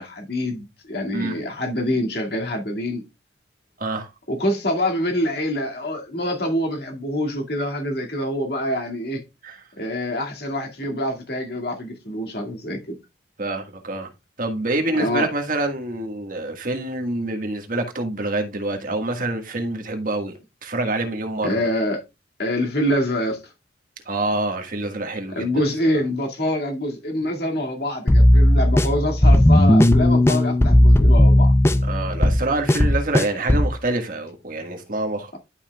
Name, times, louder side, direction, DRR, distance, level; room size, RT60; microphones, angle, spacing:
voice 1, 0.0-3.0 4.3-9.2 9.8-13.0 15.0-15.3 21.4-22.0 22.4-23.5 25.3-31.5, left 1 dB, 60° left, 2.1 m, -25 dB
voice 2, 3.8-4.1 9.4-9.6 13.4-14.1 14.4-21.7 24.0-25.7 31.8-35.4, right 2 dB, 50° right, 1.6 m, -26 dB
sound 1, 28.1-33.7, left 1 dB, 15° left, 0.4 m, -15 dB
11.5 x 5.7 x 2.3 m
head